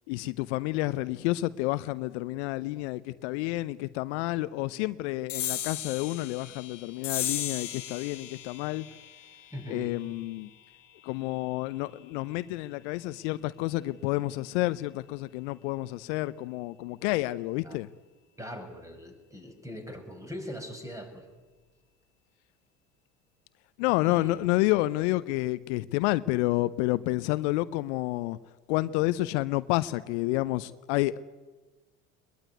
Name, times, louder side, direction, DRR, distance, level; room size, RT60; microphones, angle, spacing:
voice 1, 0.1-8.8 9.7-10.5 11.0-17.9 23.8-28.4 28.7-31.2, left 18 dB, 70° left, 0.7 m, -29 dB
sound 1, 5.3-12.1, left 11 dB, 90° left, 1.4 m, -38 dB
voice 2, 9.5-9.9 17.6-17.8 18.3-21.3 24.0-24.4, equal, 10° right, 5.8 m, -41 dB
21.0 x 21.0 x 9.6 m
hypercardioid pair, 70°, 36 cm